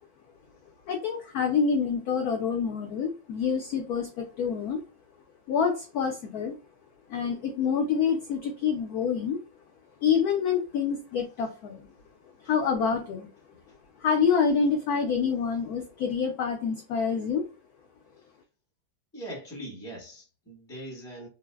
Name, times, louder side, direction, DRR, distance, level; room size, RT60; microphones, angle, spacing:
voice 1, 0.9-4.8 5.5-6.6 7.1-9.4 10.0-11.8 12.4-13.3 14.0-17.4, left 6 dB, 75° left, 0.8 m, -27 dB
voice 2, 19.1-21.3, right 1 dB, 5° left, 0.6 m, -41 dB
3.8 x 2.0 x 2.2 m
omnidirectional pair, 2.0 m